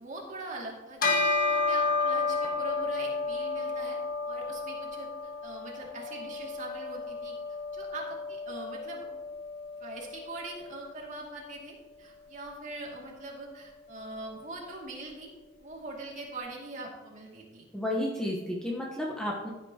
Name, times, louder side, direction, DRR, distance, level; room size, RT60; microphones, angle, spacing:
voice 1, 0.0-4.0 4.3-7.3 7.7-9.0 9.8-15.3 15.6-17.6, right 2 dB, 40° right, -2 dB, 2.4 m, -42 dB
Bell, 1.0-10.7, left 3 dB, 45° left, 1.6 m, -32 dB
voice 2, 17.7-19.5, left 1 dB, 5° left, -3 dB, 1.0 m, -32 dB
15.0 x 8.9 x 2.9 m, 1.2 s
head